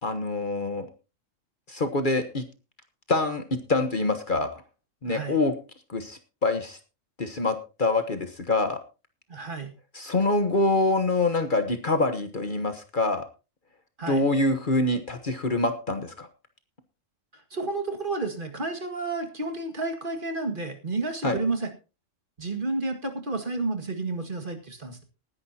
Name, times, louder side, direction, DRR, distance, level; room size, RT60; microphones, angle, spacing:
voice 1, 0.0-0.9 1.7-2.4 3.1-4.5 5.0-5.5 5.9-6.8 7.2-8.8 9.9-13.2 14.1-16.3 21.2-21.4, left 2 dB, 40° left, 9 dB, 1.3 m, -25 dB
voice 2, 5.1-5.4 9.3-9.7 14.0-14.3 17.3-21.7 22.4-25.0, right 3 dB, 40° right, 5 dB, 2.1 m, -31 dB
19.5 x 10.5 x 2.8 m, 0.31 s
omnidirectional pair, 1.3 m